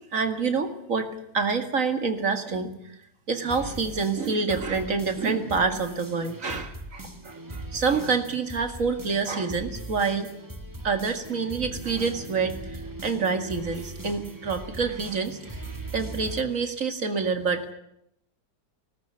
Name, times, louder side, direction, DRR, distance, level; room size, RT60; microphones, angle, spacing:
voice 1, 0.0-2.7 3.3-10.3 10.8-17.7, right 4 dB, 50° right, 7 dB, 2.4 m, -27 dB
sound 1, 3.4-16.4, right 2 dB, 10° right, 1.5 m, -40 dB
19.5 x 18.5 x 9.9 m, 0.78 s
omnidirectional pair, 1.9 m